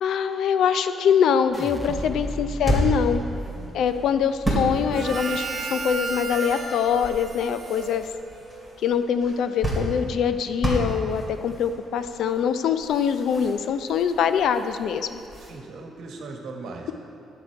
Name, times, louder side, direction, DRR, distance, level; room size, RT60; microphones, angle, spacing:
voice 1, 0.0-3.2 3.7-8.1 8.8-15.2, left 7 dB, 75° left, 10 dB, 0.4 m, -23 dB
sound 1, 1.4-15.5, equal, 15° left, 2.7 m, -32 dB
sound 2, 1.5-7.7 8.1-8.7, right 1 dB, ahead, 0.4 m, -38 dB
voice 2, 3.2-3.7 15.4-16.9, right 3 dB, 70° right, 2 dB, 1.2 m, -40 dB
Harmonica, 4.9-8.7, right 4 dB, 45° right, 1.1 m, -33 dB
10.0 x 7.8 x 4.6 m, 2.6 s
cardioid pair, 85°, 0 cm